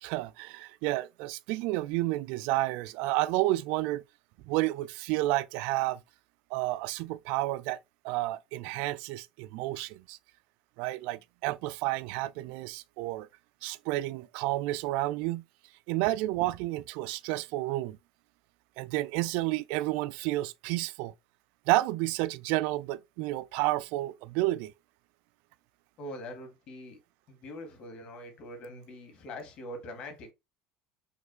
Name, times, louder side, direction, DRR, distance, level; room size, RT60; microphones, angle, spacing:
voice 1, 0.0-4.0 4.5-6.0 6.5-7.8 8.0-10.2 10.8-13.3 13.6-15.4 15.9-18.0 18.8-21.1 21.7-24.7, right 17 dB, 70° right, 0.3 m, -30 dB
voice 2, 26.0-27.0 27.3-30.3, left 1 dB, 55° left, 1.9 m, -43 dB
5.9 x 3.2 x 2.4 m
supercardioid pair, 90°, 2 cm